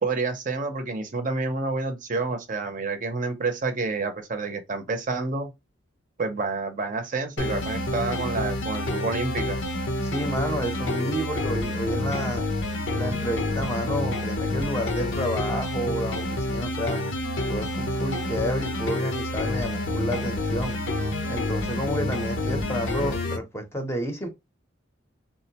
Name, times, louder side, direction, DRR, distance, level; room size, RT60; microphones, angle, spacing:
voice 1, 0.0-5.5 6.2-9.6, right 3 dB, 40° right, 0.6 m, -29 dB
sound 1, 7.4-23.4, left 1 dB, 75° left, 0.7 m, -28 dB
voice 2, 10.0-12.5 12.9-17.0 17.5-20.8 21.3-24.3, equal, 15° left, 0.6 m, -30 dB
3.6 x 2.1 x 2.7 m
head